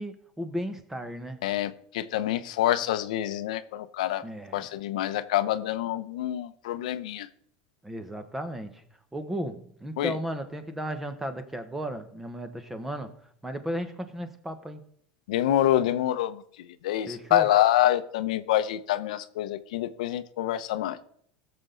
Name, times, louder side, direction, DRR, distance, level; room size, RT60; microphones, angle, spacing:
voice 1, 0.0-1.4 4.2-4.7 7.8-8.8 9.1-13.1 13.4-14.8 17.1-17.5, equal, 5° right, 1.1 m, -35 dB
voice 2, 1.4-4.2 4.5-7.3 10.0-10.1 15.3-16.4 16.8-21.0, left 13 dB, 85° left, 0.8 m, -26 dB
17.0 x 6.9 x 3.9 m
supercardioid pair, 135°, 4 cm